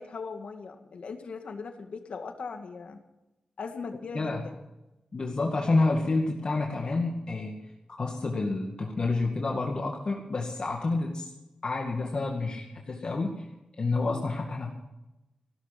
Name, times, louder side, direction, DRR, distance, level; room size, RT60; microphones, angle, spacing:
voice 1, 0.0-3.0 3.6-4.6, left 4 dB, 70° left, 5 dB, 2.1 m, -39 dB
voice 2, 5.1-7.6 8.0-11.3 11.6-13.4 13.8-14.7, left 3 dB, 45° left, 0 dB, 2.1 m, -29 dB
16.5 x 12.5 x 6.0 m, 0.96 s
wide cardioid pair, 115°, 2 cm